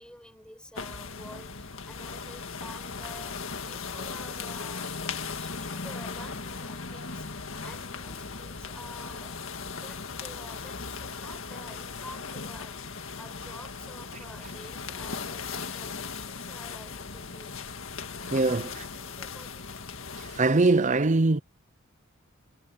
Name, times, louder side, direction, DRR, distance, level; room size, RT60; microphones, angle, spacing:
voice 1, 0.0-17.6 18.4-19.8, left 1 dB, 5° left, 5.3 m, -50 dB
sound 1, 0.8-20.4, left 5 dB, 65° left, 1.9 m, -38 dB
voice 2, 18.3-18.6 20.2-21.4, right 3 dB, 35° right, 0.6 m, -22 dB
head